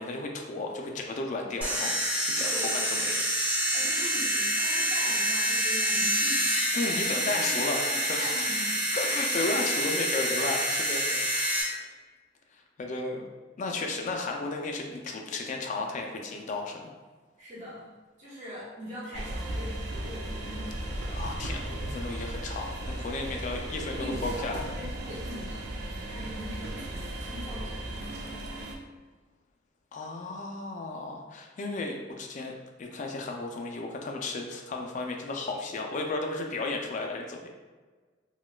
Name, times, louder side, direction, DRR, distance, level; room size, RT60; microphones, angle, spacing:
voice 1, 0.0-3.7 6.7-7.8 8.1-8.5 8.9-11.9 12.8-13.3 13.6-16.9 21.1-24.7 29.9-37.5, left 3 dB, 40° left, 2 dB, 0.3 m, -34 dB
sound 1, 1.6-11.6, equal, 10° right, 0.9 m, -27 dB
voice 2, 2.3-2.6 3.7-8.9 17.4-17.9 18.2-20.9 23.9-28.7, equal, 40° right, -8 dB, 1.0 m, -42 dB
sound 2, 19.1-28.8, right 1 dB, 60° right, 0.4 m, -36 dB
4.1 x 2.2 x 2.2 m, 1.4 s
head